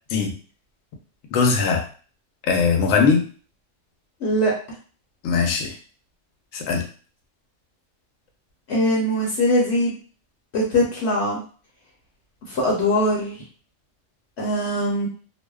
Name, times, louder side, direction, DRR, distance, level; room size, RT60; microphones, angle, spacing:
voice 1, 1.3-1.9 2.4-3.3 5.2-5.8 6.5-6.9, left 5 dB, 85° left, 3 dB, 1.0 m, -20 dB
voice 2, 4.2-4.5 8.7-9.9 10.5-11.4 12.5-13.4 14.4-15.1, equal, 65° left, -3 dB, 0.9 m, -21 dB
2.6 x 2.0 x 2.3 m, 0.40 s
omnidirectional pair, 1.3 m